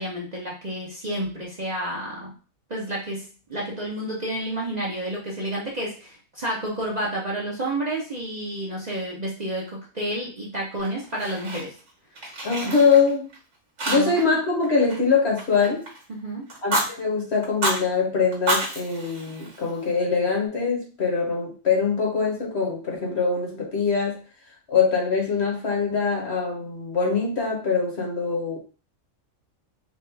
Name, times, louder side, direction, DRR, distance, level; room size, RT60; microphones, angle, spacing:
voice 1, 0.0-2.3 2.7-11.7 12.6-12.7 13.9-14.2 16.1-16.5, right 1 dB, 35° right, -4 dB, 0.8 m, -30 dB
Fire, 10.8-11.9 12.2-13.4 13.8-14.4 14.6-16.0 16.5-16.9 17.4-17.8 18.3-19.9, right 2 dB, 55° right, 1.8 m, -29 dB
voice 2, 12.4-13.2 13.9-15.8 16.6-24.2 24.7-28.6, left 5 dB, 50° left, -1 dB, 1.4 m, -23 dB
4.4 x 2.5 x 3.3 m, 0.37 s
omnidirectional pair, 1.4 m